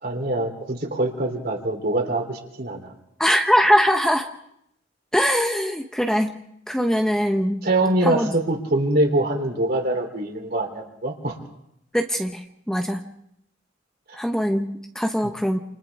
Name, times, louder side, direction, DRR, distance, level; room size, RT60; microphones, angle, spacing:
voice 1, 0.0-2.9 7.6-11.4 14.1-14.2, right 1 dB, 50° right, 3 dB, 3.3 m, -24 dB
voice 2, 3.2-4.3 5.1-6.4 6.7-7.7 8.0-8.3 11.9-13.1 14.1-15.6, equal, 5° left, 4 dB, 0.8 m, -22 dB
28.5 x 28.0 x 3.6 m, 0.77 s
head